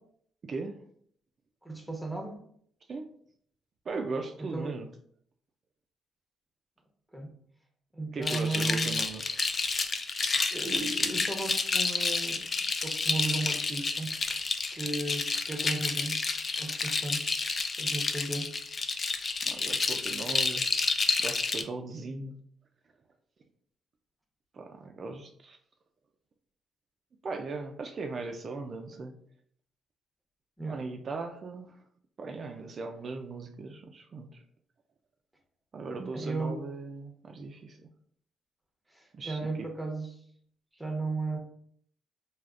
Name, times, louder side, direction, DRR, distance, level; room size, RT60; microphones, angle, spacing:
voice 1, 0.4-0.8 2.9-3.1 3.9-4.9 8.1-9.2 19.5-20.7 21.2-22.4 24.5-25.6 27.2-29.1 30.7-31.8 32.2-34.4 35.7-37.8 39.1-39.7, right 3 dB, 45° right, 4 dB, 0.3 m, -38 dB
voice 2, 1.6-2.4 4.5-4.7 7.1-7.3 7.9-9.0 10.5-12.5 12.7-14.2 14.7-16.2 16.6-17.3 17.8-18.5 30.6-30.8 36.1-36.6 38.9-40.2 40.7-41.4, right 2 dB, 5° right, 2 dB, 0.7 m, -35 dB
sound 1, 8.2-21.6, left 4 dB, 40° left, 0.3 m, -30 dB
3.4 x 2.3 x 2.4 m, 0.63 s
cardioid pair, 90°, 0 cm